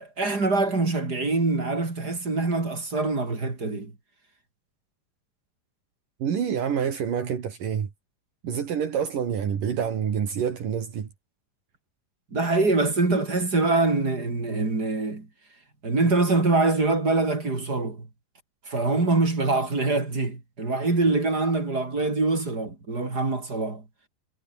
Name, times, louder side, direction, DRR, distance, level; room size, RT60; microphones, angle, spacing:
voice 1, 0.0-3.9 12.3-15.3 15.8-18.1 18.7-23.8, right 3 dB, 25° right, 4.3 m, -24 dB
voice 2, 6.2-7.9 8.4-11.1, right 7 dB, 70° right, 4.4 m, -27 dB
omnidirectional pair, 4.0 m